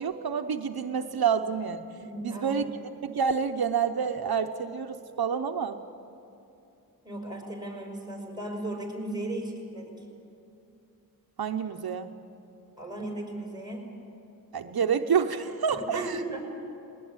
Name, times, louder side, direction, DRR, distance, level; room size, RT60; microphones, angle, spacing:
voice 1, 0.0-1.9 2.2-2.7 3.0-5.8 11.4-12.1 14.5-16.4, right 6 dB, 90° right, 7 dB, 0.9 m, -28 dB
voice 2, 2.0-2.6 7.0-10.0 12.8-13.8 15.9-16.4, right 1 dB, 10° right, 1 dB, 5.9 m, -36 dB
21.0 x 20.0 x 8.8 m, 2.8 s
wide cardioid pair, 90°, 36 cm